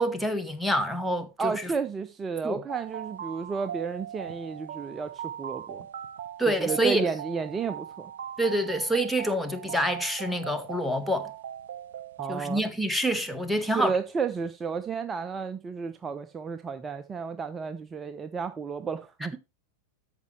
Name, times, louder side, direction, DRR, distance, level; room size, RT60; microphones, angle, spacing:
voice 1, 0.0-1.7 2.4-2.6 6.4-7.0 8.4-11.3 12.3-13.9, right 1 dB, ahead, 1.0 m, -27 dB
voice 2, 1.4-5.9 6.5-8.1 12.2-12.6 13.6-19.3, right 5 dB, 20° right, 0.5 m, -32 dB
sound 1, 2.7-12.6, right 9 dB, 60° right, 0.6 m, -40 dB
13.5 x 5.2 x 3.2 m
figure-of-eight pair, 90°, 0 cm